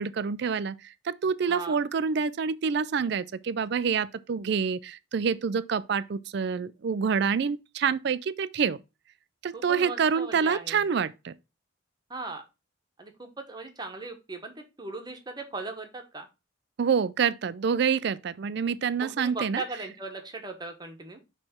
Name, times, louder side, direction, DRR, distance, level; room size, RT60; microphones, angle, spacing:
voice 1, 0.0-8.8 9.4-11.3 16.8-19.6, right 6 dB, 55° right, 0.4 m, -27 dB
voice 2, 1.5-1.8 9.5-10.9 12.1-12.4 13.0-14.5 14.8-16.3 19.0-21.2, right 3 dB, 20° right, 1.2 m, -38 dB
6.3 x 3.3 x 5.8 m
head